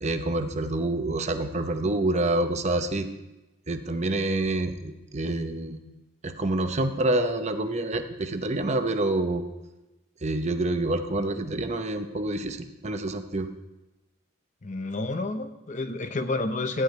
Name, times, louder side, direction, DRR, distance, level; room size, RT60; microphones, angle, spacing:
voice 1, 0.0-3.1 3.7-5.8 6.2-9.4 10.2-13.5, right 2 dB, 35° right, 7 dB, 0.8 m, -27 dB
voice 2, 14.6-16.8, left 2 dB, 35° left, 8 dB, 0.7 m, -29 dB
13.0 x 5.0 x 9.0 m, 1.0 s
head